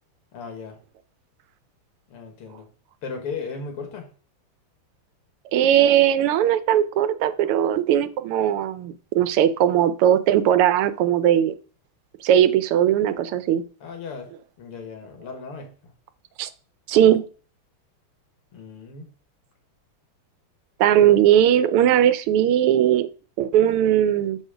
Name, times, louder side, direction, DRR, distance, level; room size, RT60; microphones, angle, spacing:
voice 1, 0.3-0.8 2.1-2.7 3.0-4.1 13.8-14.3 14.6-15.9 18.5-19.1, left 5 dB, 90° left, 5 dB, 2.6 m, -36 dB
voice 2, 5.5-11.5 12.2-13.6 16.4-16.5 16.9-17.3 20.8-23.1 23.4-24.4, right 10 dB, 85° right, 13 dB, 1.6 m, -19 dB
6.4 x 6.3 x 5.0 m, 0.40 s
omnidirectional pair, 2.4 m